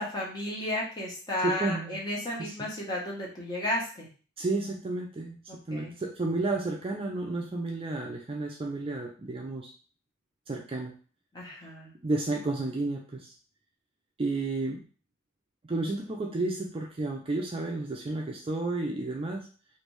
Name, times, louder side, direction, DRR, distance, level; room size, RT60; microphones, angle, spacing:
voice 1, 0.0-4.1 5.5-5.9 11.3-11.9, left 1 dB, 20° left, -4 dB, 1.0 m, -33 dB
voice 2, 1.4-2.0 2.4-2.5 4.4-5.4 5.7-9.7 10.5-10.9 12.0-13.3 14.2-14.8 15.7-19.5, right 2 dB, 25° right, 0 dB, 0.4 m, -31 dB
3.2 x 2.5 x 3.1 m, 0.39 s
head